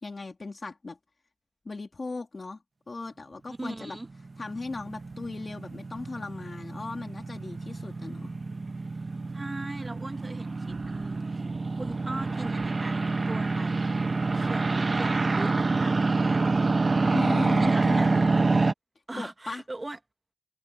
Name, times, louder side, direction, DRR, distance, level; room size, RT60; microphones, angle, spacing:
voice 1, 0.0-1.0 1.6-2.6 2.9-4.0 4.4-8.3 17.1-18.4 19.1-19.6, left 3 dB, 65° left, 2.9 m, -37 dB
voice 2, 3.5-4.1 9.3-11.5 11.7-13.9 14.3-16.5 17.4-18.1 19.1-20.0, right 2 dB, 35° right, 1.3 m, -40 dB
sound 1, 4.1-18.7, right 3 dB, 60° right, 1.0 m, -27 dB
wide cardioid pair, 75°, 0 cm